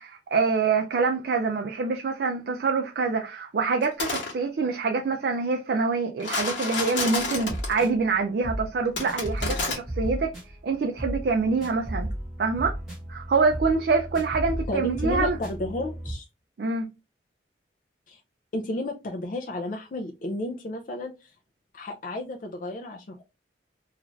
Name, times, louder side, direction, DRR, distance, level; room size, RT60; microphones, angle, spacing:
voice 1, 0.0-10.3 10.6-12.1 12.4-12.7 13.1-15.4 16.6-16.9, right 4 dB, 55° right, 0.4 m, -25 dB
sound 1, 3.8-4.3 6.2-7.8 9.0-9.8, left 3 dB, 90° left, 1.0 m, -29 dB
sound 2, 7.2-16.1, right 1 dB, ahead, 1.2 m, -34 dB
voice 2, 14.7-16.3 18.1-18.2 18.5-21.3 21.7-23.2, left 1 dB, 45° left, 0.4 m, -32 dB
2.5 x 2.4 x 3.0 m
head